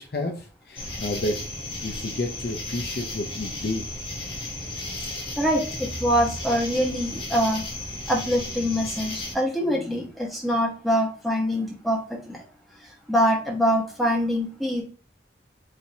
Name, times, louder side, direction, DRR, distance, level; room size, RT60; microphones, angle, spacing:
voice 1, 0.0-1.4 1.8-3.9, left 2 dB, 60° left, 2 dB, 0.6 m, -30 dB
sound 1, 0.8-9.3, left 2 dB, 30° left, 1.0 m, -34 dB
voice 2, 5.4-7.6 8.1-12.0 12.3-12.4 13.1-14.8, equal, ahead, -2 dB, 1.0 m, -24 dB
4.8 x 2.8 x 2.7 m, 0.38 s
head